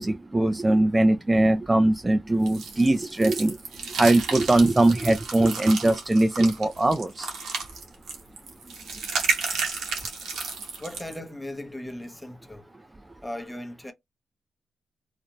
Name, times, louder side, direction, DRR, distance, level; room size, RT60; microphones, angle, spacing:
voice 1, 0.0-3.6 4.0-7.3, right 2 dB, 25° right, 0.3 m, -21 dB
sound 1, 2.5-11.2, right 5 dB, 80° right, 0.8 m, -32 dB
voice 2, 10.8-12.7 13.2-13.9, left 1 dB, 10° left, 0.7 m, -37 dB
2.5 x 2.1 x 2.8 m
supercardioid pair, 50°, 0 cm